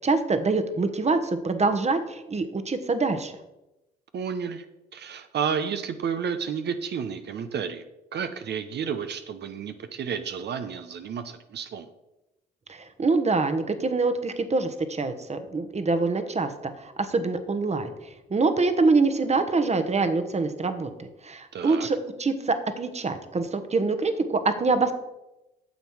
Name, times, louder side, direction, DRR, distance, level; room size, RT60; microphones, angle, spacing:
voice 1, 0.0-3.3 12.7-17.9 18.3-20.9 21.2-24.9, right 3 dB, 30° right, 9 dB, 1.2 m, -25 dB
voice 2, 4.1-4.6 4.9-7.8 8.1-11.9 21.5-21.9, right 7 dB, 55° right, 9 dB, 0.8 m, -31 dB
9.3 x 7.0 x 4.6 m, 0.95 s
hypercardioid pair, 55°, 21 cm